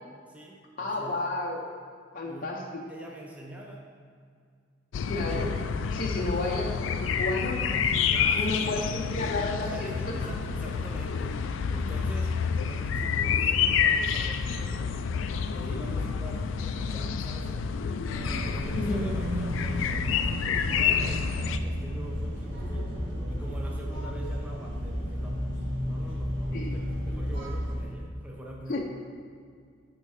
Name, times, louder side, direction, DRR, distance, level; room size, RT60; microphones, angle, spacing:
voice 1, 0.2-1.2 2.2-2.5 2.9-3.9 5.7-6.5 8.1-9.0 9.6-12.4 12.6-15.0 15.5-17.7 18.1-23.0 23.3-25.4 25.8-28.8, right 1 dB, 5° right, -2 dB, 0.5 m, -44 dB
voice 2, 0.8-1.6 2.1-2.6 5.1-5.6 5.9-10.2 18.7-19.1 26.5-26.7 28.7-28.8, left 2 dB, 45° left, -2 dB, 0.6 m, -32 dB
sound 1, 4.9-21.6, left 6 dB, 80° left, 0.3 m, -28 dB
sound 2, 18.0-27.8, equal, 85° right, 1.8 m, -32 dB
8.2 x 3.6 x 4.8 m, 2.2 s
head